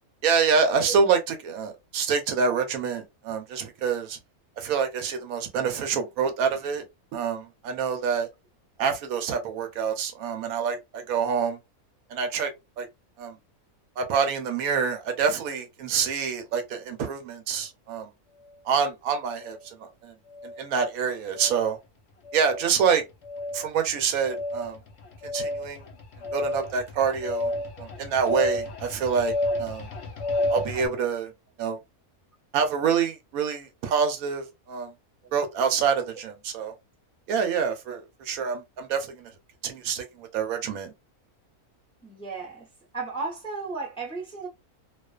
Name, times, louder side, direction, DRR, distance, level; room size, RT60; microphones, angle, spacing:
voice 1, 0.2-4.2 4.6-6.8 7.1-8.3 8.8-11.6 12.1-12.5 12.8-12.9 13.2-13.4 14.0-18.1 18.6-20.1 20.4-21.8 22.3-23.0 23.5-24.8 25.2-25.8 26.3-27.5 27.8-29.9 30.5-31.3 31.6-31.8 32.5-34.9 35.3-36.7 37.3-39.3 39.6-40.9, right 6 dB, 75° right, 1.0 m, -26 dB
sound 1, 19.4-19.6 20.3-20.7 21.3-21.7 22.3-22.7 23.2-23.7 24.2-30.9, left 1 dB, 55° left, 0.9 m, -31 dB
voice 2, 42.0-42.7 42.9-44.5, right 3 dB, 5° left, 0.6 m, -34 dB
2.4 x 2.4 x 2.2 m
omnidirectional pair, 1.6 m